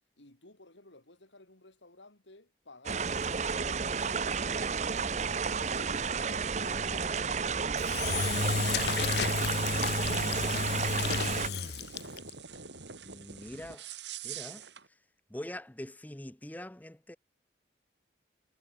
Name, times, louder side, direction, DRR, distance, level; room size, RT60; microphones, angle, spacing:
voice 1, 0.2-11.4, left 2 dB, 85° left, 4.5 m, -56 dB
sound 1, 2.9-11.5, right 5 dB, 40° right, 0.7 m, -31 dB
sound 2, 3.9-14.9, right 7 dB, 75° right, 4.7 m, -49 dB
Engine / Drill, 7.8-12.3, left 5 dB, 60° left, 0.9 m, -32 dB
voice 2, 13.1-13.9 14.2-14.6 15.3-17.2, left 1 dB, 10° left, 0.6 m, -43 dB
head